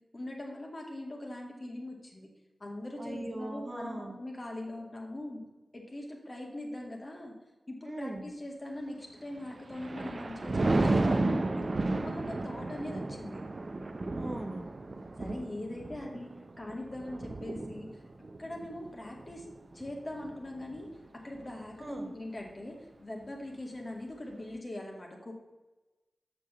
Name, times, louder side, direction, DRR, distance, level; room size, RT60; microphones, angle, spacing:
voice 1, 0.1-2.3 2.6-5.4 5.7-7.3 7.7-11.7 12.0-13.4 15.2-18.0 18.4-19.5 19.7-20.9 21.2-25.3, left 1 dB, 40° left, -1 dB, 2.1 m, -41 dB
voice 2, 3.0-4.1 7.9-8.3 14.1-14.7 21.8-22.1, right 1 dB, 30° right, 3 dB, 1.4 m, -39 dB
Thunder, 9.4-20.9 21.3-21.7, right 2 dB, 55° right, 0.6 m, -33 dB
6.5 x 6.1 x 6.8 m, 1.1 s
cardioid pair, 45°, 0 cm